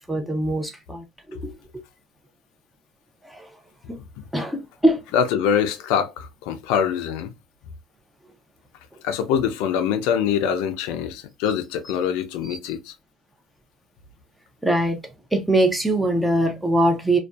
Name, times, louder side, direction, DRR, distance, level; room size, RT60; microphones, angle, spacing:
voice 1, 0.1-1.6 3.3-3.5 3.9-4.0 4.3-5.0 12.4-12.6 14.6-15.0 15.3-17.2, right 1 dB, 5° right, 0.6 m, -22 dB
voice 2, 5.1-7.3 9.0-12.9, left 8 dB, 85° left, 0.4 m, -24 dB
2.5 x 2.2 x 2.2 m
cardioid pair, 110°, 0 cm